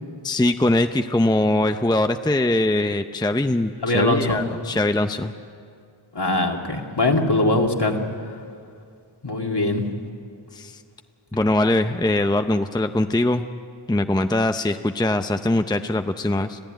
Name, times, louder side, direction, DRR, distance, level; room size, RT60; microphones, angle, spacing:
voice 1, 0.2-5.3 10.5-10.8 11.3-13.4 13.9-16.6, left 1 dB, 10° left, 8 dB, 0.6 m, -22 dB
voice 2, 3.8-4.4 6.1-8.0 9.2-9.8, left 2 dB, 55° left, 1 dB, 2.3 m, -21 dB
25.5 x 15.5 x 9.1 m, 2.3 s
wide cardioid pair, 40°, 49 cm